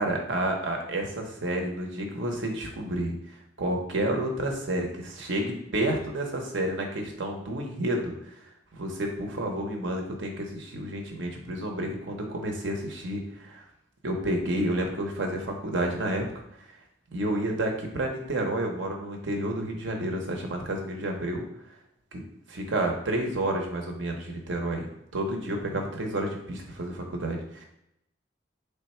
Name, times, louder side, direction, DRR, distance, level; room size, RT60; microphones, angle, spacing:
voice 1, 0.0-3.1 3.6-8.1 8.7-13.6 14.0-16.2 17.1-21.4 22.1-22.2 22.5-27.6, right 1 dB, 75° right, 2 dB, 0.7 m, -30 dB
3.4 x 2.2 x 4.2 m, 0.81 s
head